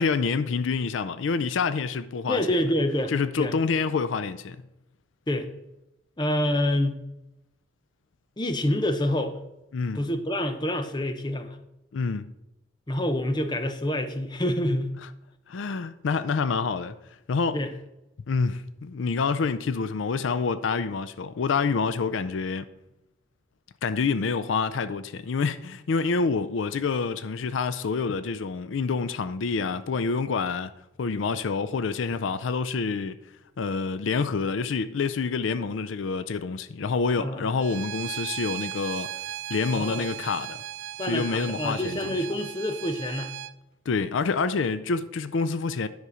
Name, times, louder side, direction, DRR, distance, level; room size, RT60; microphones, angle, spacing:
voice 1, 0.0-2.5 3.1-4.6 9.7-10.0 11.9-12.3 15.5-16.9 17.3-17.6 18.3-22.7 23.8-30.7 31.0-33.2 33.6-39.1 39.5-40.6 41.0-42.1 43.9-45.9, left 4 dB, 85° left, 0.4 m, -27 dB
voice 2, 2.3-3.1 3.4-3.5 5.3-5.5 6.2-7.0 8.4-9.3 9.9-11.6 12.9-14.9 17.5-17.7 37.2-37.4 39.7-40.1 41.0-43.3, left 1 dB, 25° left, 0.7 m, -27 dB
Bowed string instrument, 37.6-43.5, right 12 dB, 75° right, 0.4 m, -37 dB
9.5 x 5.6 x 4.9 m
head